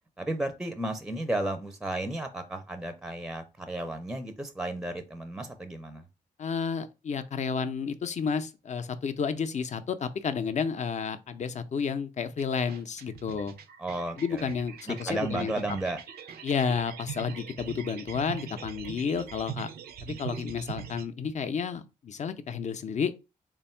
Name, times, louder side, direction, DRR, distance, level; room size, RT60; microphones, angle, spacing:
voice 1, 0.2-6.0 13.8-14.5 14.9-16.0, right 2 dB, 5° right, 0.5 m, -33 dB
voice 2, 6.4-13.6 14.2-15.5 16.4-19.7 20.0-23.1, left 6 dB, 45° left, 0.5 m, -31 dB
sound 1, 12.3-21.1, right 8 dB, 75° right, 0.4 m, -42 dB
3.4 x 2.2 x 4.3 m
cardioid pair, 80°, 16 cm